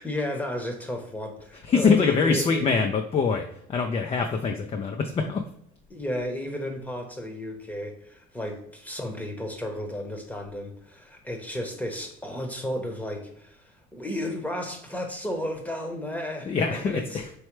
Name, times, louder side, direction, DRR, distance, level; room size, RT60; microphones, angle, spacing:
voice 1, 0.0-2.8 5.9-17.2, left 1 dB, 5° left, 4 dB, 1.0 m, -33 dB
voice 2, 1.7-5.4 16.5-17.3, left 5 dB, 30° left, 4 dB, 0.5 m, -24 dB
4.6 x 3.2 x 3.1 m, 0.69 s
cardioid pair, 105°, 20 cm